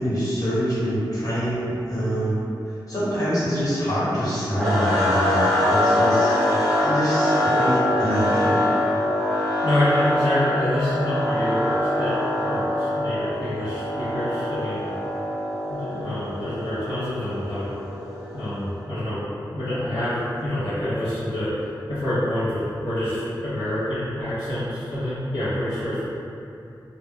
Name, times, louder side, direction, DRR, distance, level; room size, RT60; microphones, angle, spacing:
voice 1, 0.0-2.3 2.9-8.6, equal, 45° left, -12 dB, 1.2 m, -25 dB
sound 1, 4.6-18.7, left 1 dB, ahead, 0.7 m, -24 dB
voice 2, 9.6-14.9 15.7-17.7 18.3-26.0, left 1 dB, 70° left, -14 dB, 0.6 m, -27 dB
2.1 x 2.1 x 3.3 m, 2.7 s
wide cardioid pair, 85°, 8 cm